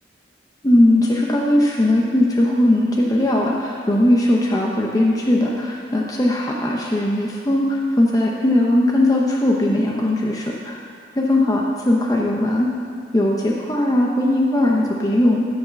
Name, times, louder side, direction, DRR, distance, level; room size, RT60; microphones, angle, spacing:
voice 1, 0.6-10.8 11.2-12.7 13.1-15.5, left 1 dB, 20° left, -2 dB, 0.7 m, -19 dB
13.0 x 4.9 x 6.9 m, 2.4 s
head